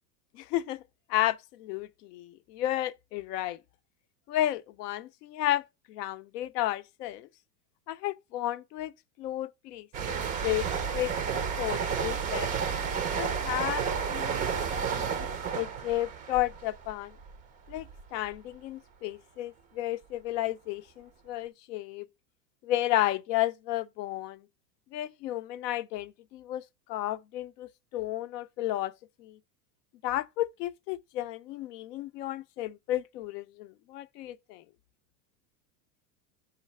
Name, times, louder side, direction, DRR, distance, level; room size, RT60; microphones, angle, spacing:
voice 1, 0.3-0.8 1.1-3.6 4.3-5.6 5.9-7.3 7.9-8.9 9.2-12.5 13.2-14.5 14.8-15.3 15.5-17.2 17.7-22.1 22.6-24.4 24.9-26.6 26.9-28.9 29.2-29.4 30.0-34.6, left 14 dB, 75° left, 0.6 m, -33 dB
sound 1, 9.9-17.4 17.7-18.0, right 6 dB, 20° right, 0.4 m, -31 dB
4.9 x 2.5 x 4.2 m
supercardioid pair, 125°, 49 cm